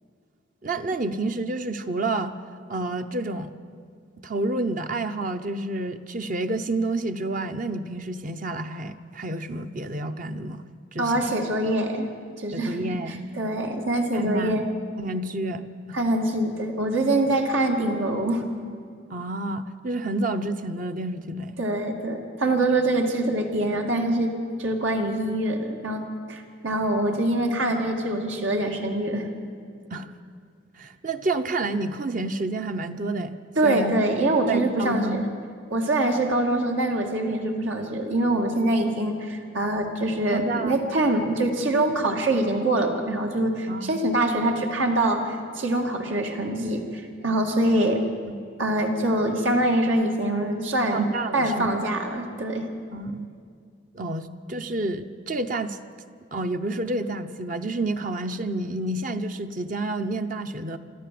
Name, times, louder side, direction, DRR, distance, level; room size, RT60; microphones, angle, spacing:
voice 1, 0.6-2.4 2.7-3.5 4.2-10.6 10.9-11.3 12.5-13.2 14.1-14.6 15.0-16.0 19.1-21.5 29.9-30.1 30.8-34.0 34.5-35.2 40.3-40.8 43.7-44.0 48.3-48.4 50.9-51.7 52.9-53.3 53.9-55.8 56.3-60.8, right 2 dB, 40° right, 7 dB, 0.8 m, -29 dB
voice 2, 11.0-12.1 12.4-12.8 13.4-14.6 15.9-18.4 21.6-24.3 24.6-26.0 26.3-29.3 33.6-35.2 35.7-48.0 48.6-51.0 51.3-52.7, right 1 dB, 85° right, 2 dB, 2.3 m, -24 dB
25.5 x 13.5 x 7.7 m, 2.3 s
head